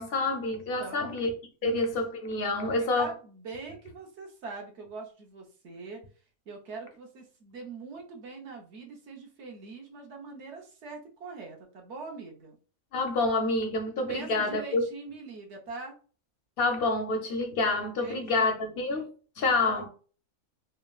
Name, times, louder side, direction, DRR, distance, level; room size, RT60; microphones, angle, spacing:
voice 1, 0.0-1.3 1.6-3.1 12.9-14.8 16.6-19.9, left 2 dB, 60° left, 0.6 m, -28 dB
voice 2, 0.8-1.2 1.6-1.8 2.9-6.0 6.5-12.6 14.1-16.0 18.0-18.9 19.4-19.9, right 4 dB, 60° right, 1.0 m, -43 dB
3.4 x 2.0 x 2.3 m
omnidirectional pair, 1.4 m